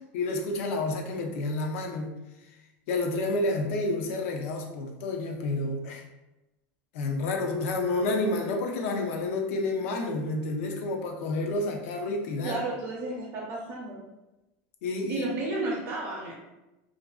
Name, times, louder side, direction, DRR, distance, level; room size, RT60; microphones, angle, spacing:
voice 1, 0.1-2.1 2.9-6.0 6.9-12.6 14.8-15.3, left 2 dB, 75° left, 3 dB, 0.4 m, -29 dB
voice 2, 12.4-14.0 15.1-16.3, right 2 dB, 35° right, -5 dB, 0.4 m, -32 dB
2.4 x 2.3 x 2.2 m, 1.0 s
supercardioid pair, 150°, 7 cm